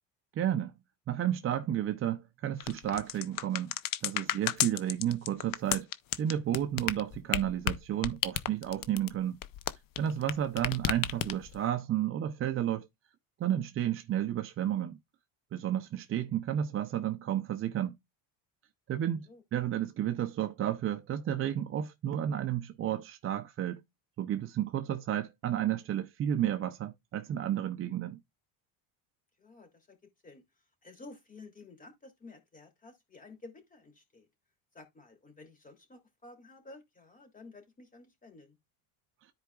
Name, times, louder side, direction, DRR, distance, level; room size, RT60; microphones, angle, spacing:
voice 1, 0.4-0.7 1.1-3.7 4.0-5.9 6.2-9.4 10.0-12.9 13.4-15.0 15.5-18.0 18.9-23.8 24.2-28.2, right 11 dB, 30° right, 0.5 m, -32 dB
sound 1, 2.6-10.3 10.6-11.6, left 12 dB, 45° left, 0.7 m, -32 dB
voice 2, 29.4-30.0 30.2-30.4 30.8-34.3 34.7-38.6, left 3 dB, 15° left, 2.8 m, -52 dB
13.5 x 4.7 x 2.3 m
cardioid pair, 145°, 47 cm